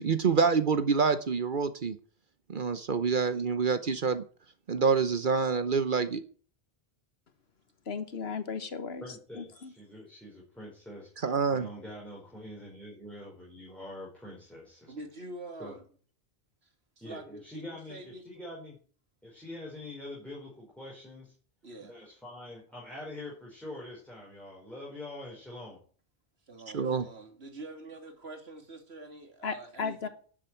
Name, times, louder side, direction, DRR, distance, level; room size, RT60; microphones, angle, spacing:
voice 1, 0.0-2.0 2.5-4.2 4.7-6.2 11.2-11.7 26.7-27.1, right 5 dB, 55° right, 1.0 m, -27 dB
voice 2, 7.9-9.0 9.4-9.7 29.4-30.1, left 5 dB, 80° left, 1.4 m, -35 dB
voice 3, 9.0-14.9 15.6-15.8 17.0-18.8 19.2-21.3 21.8-25.8, left 1 dB, ahead, 5.0 m, -45 dB
voice 4, 14.9-15.8 17.0-18.2 21.6-21.9 26.5-30.1, right 2 dB, 85° right, 2.8 m, -45 dB
11.5 x 7.6 x 9.2 m
omnidirectional pair, 1.0 m